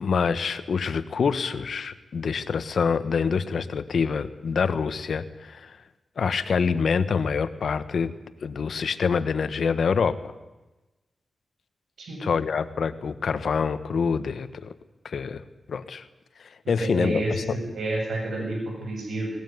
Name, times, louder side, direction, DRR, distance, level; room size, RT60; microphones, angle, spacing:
voice 1, 0.0-5.8 6.2-8.1 8.4-10.2 12.2-14.7 15.0-15.4 15.7-16.1 16.4-17.6, left 5 dB, 70° left, 12 dB, 1.5 m, -26 dB
voice 2, 16.6-19.4, right 1 dB, 75° right, 1 dB, 7.5 m, -29 dB
19.5 x 19.0 x 9.5 m, 1.1 s
cardioid pair, 85°, 0 cm